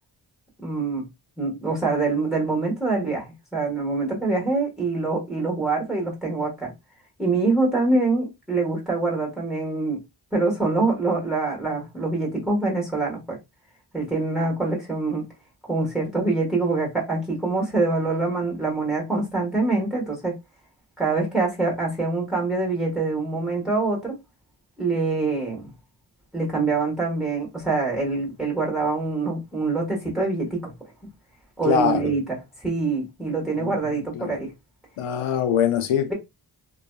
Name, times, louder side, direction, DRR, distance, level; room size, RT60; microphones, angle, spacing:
voice 1, 0.6-1.0 1.4-6.7 7.2-10.0 10.3-13.4 13.9-15.2 15.7-20.3 21.0-24.2 24.8-25.7 26.3-30.7 31.6-34.5, right 3 dB, ahead, 1.3 m, -25 dB
voice 2, 31.6-32.1 33.6-33.8 34.1-34.3 35.0-36.1, left 8 dB, 85° left, 0.6 m, -23 dB
2.6 x 2.3 x 2.2 m
cardioid pair, 45°, 49 cm